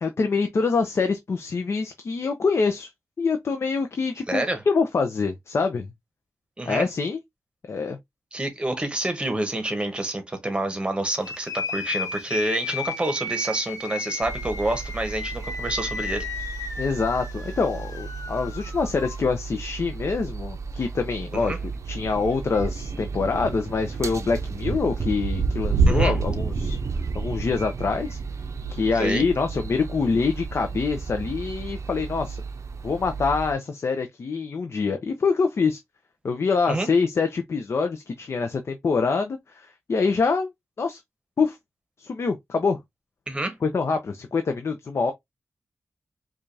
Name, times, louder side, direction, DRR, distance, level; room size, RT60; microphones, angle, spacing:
voice 1, 0.0-2.9 3.2-5.9 6.7-7.2 7.7-8.0 16.8-21.6 21.9-26.8 27.1-28.2 28.7-32.4 32.8-35.8 36.2-40.5 40.8-41.0 41.4-41.6 42.0-42.8 43.6-45.1, left 4 dB, 50° left, 0.5 m, -25 dB
voice 2, 4.3-4.6 6.6-6.9 8.3-16.3 21.3-21.6 25.9-26.2 28.9-29.2 36.7-36.9 43.3-43.6, right 1 dB, 15° right, 0.9 m, -28 dB
sound 1, 11.2-19.2, left 3 dB, 85° left, 1.2 m, -34 dB
sound 2, 14.2-33.5, right 4 dB, 60° right, 0.6 m, -30 dB
4.9 x 2.4 x 2.6 m
wide cardioid pair, 135°, 6 cm